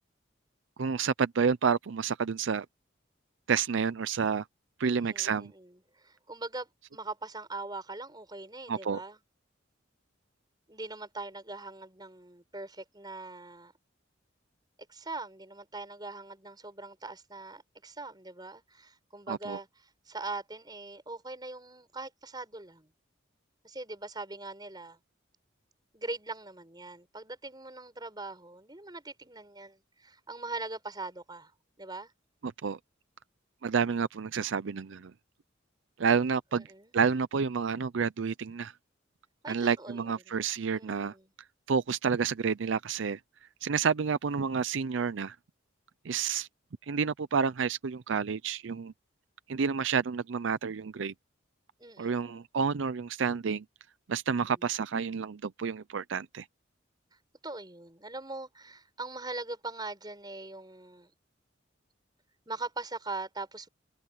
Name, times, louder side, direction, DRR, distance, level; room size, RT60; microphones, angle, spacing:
voice 1, 0.8-2.7 3.5-4.4 4.8-5.5 8.7-9.0 19.3-19.6 32.4-32.8 33.6-35.1 36.0-36.7 36.9-38.7 39.5-41.1 41.7-43.2 43.6-45.4 46.0-46.5 46.9-48.9 49.5-51.1 52.0-53.6 54.1-56.5, right 6 dB, 70° right, 0.5 m, -29 dB
voice 2, 4.8-9.2 10.7-13.7 14.9-19.7 20.1-22.9 23.6-25.0 25.9-31.5 31.8-32.1 36.5-36.9 39.4-40.4 40.7-41.3 51.8-52.3 54.3-54.6 57.4-61.1 62.5-63.7, right 3 dB, 20° right, 5.4 m, -41 dB
head